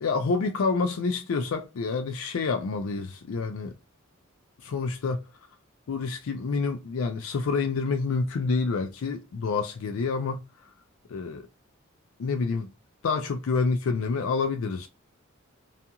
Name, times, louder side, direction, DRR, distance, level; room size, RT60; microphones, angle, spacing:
voice 1, 0.0-3.7 4.6-5.2 5.9-10.4 11.1-11.5 12.2-12.7 13.0-14.9, left 4 dB, 70° left, 0.4 m, -28 dB
2.4 x 2.3 x 2.7 m
head